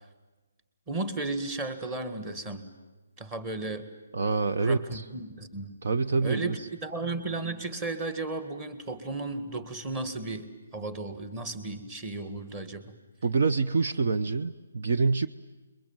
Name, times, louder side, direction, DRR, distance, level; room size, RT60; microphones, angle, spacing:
voice 1, 0.9-2.7 3.2-3.9 4.6-5.7 6.2-10.5 10.7-12.9, right 2 dB, 15° right, 10 dB, 1.9 m, -34 dB
voice 2, 4.1-5.0 5.8-6.6 13.2-15.3, right 4 dB, 55° right, 10 dB, 0.9 m, -26 dB
27.0 x 22.5 x 9.0 m, 1.2 s
hypercardioid pair, 165°, 0 cm